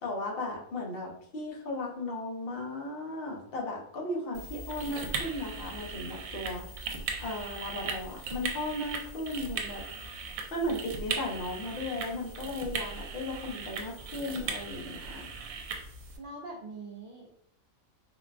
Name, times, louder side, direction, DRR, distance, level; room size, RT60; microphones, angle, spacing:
voice 1, 0.0-6.6 7.2-9.8 10.5-15.3, left 1 dB, 50° left, -1 dB, 0.8 m, -36 dB
sound 1, 4.3-16.2, right 5 dB, 80° right, 1.0 m, -38 dB
voice 2, 16.2-17.3, right 2 dB, 65° right, -2 dB, 0.5 m, -43 dB
3.9 x 2.2 x 2.4 m, 0.67 s
omnidirectional pair, 1.4 m